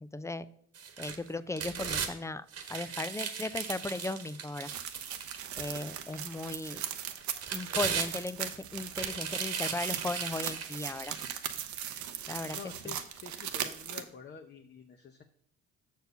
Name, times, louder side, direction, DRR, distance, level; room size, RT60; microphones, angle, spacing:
voice 1, 0.1-0.5 1.0-4.7 5.6-6.8 7.5-11.2 12.3-12.6 12.8-12.9, left 2 dB, 10° left, 15 dB, 0.4 m, -37 dB
sound 1, 0.7-2.1 2.5-5.9 6.4-6.5 7.2-8.5 8.9-11.6 12.1-12.2, right 6 dB, 55° right, 1.3 m, -37 dB
sound 2, 4.6-14.0, right 10 dB, 75° right, 0.8 m, -39 dB
voice 2, 12.5-15.2, left 6 dB, 35° left, 4 dB, 0.8 m, -48 dB
6.7 x 4.6 x 6.7 m, 0.66 s
supercardioid pair, 75°, 30 cm